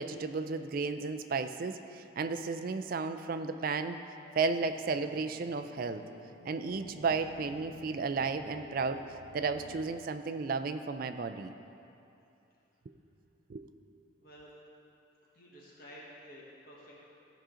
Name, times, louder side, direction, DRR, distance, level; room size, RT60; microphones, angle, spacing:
voice 1, 0.0-4.0 4.4-6.0 6.5-9.0 9.3-11.5 13.5-13.6, right 4 dB, 45° right, 8 dB, 0.3 m, -33 dB
sound 1, 4.4-9.9, left 3 dB, 85° left, 0.7 m, -53 dB
voice 2, 14.2-14.5 15.3-16.9, equal, 45° left, -5 dB, 1.4 m, -51 dB
14.5 x 5.0 x 3.8 m, 2.8 s
head